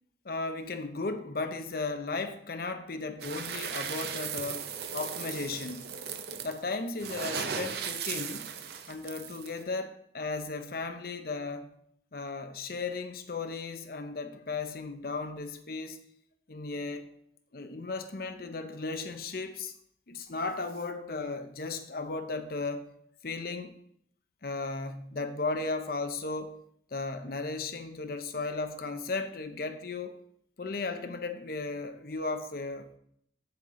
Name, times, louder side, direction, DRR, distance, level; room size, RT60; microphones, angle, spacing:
voice 1, 0.2-5.9 6.4-8.5 8.9-11.7 12.1-16.0 16.5-17.1 17.5-19.7 20.1-22.9 23.2-23.7 24.4-26.6 26.9-30.2 30.6-33.0, left 3 dB, 50° left, 0.7 m, -35 dB
sound 1, 3.2-9.6, right 7 dB, 60° right, 0.6 m, -37 dB
7.8 x 7.1 x 3.7 m
head